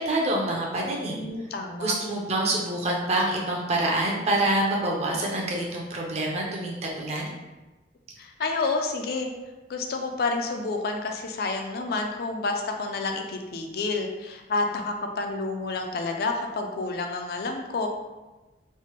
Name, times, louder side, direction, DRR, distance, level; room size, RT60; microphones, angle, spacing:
voice 1, 0.0-1.2 1.8-7.3, right 1 dB, 35° right, -2 dB, 0.5 m, -26 dB
voice 2, 1.1-1.9 8.2-9.3 9.7-17.9, left 3 dB, 55° left, 3 dB, 0.3 m, -29 dB
3.2 x 2.1 x 2.9 m, 1.1 s
head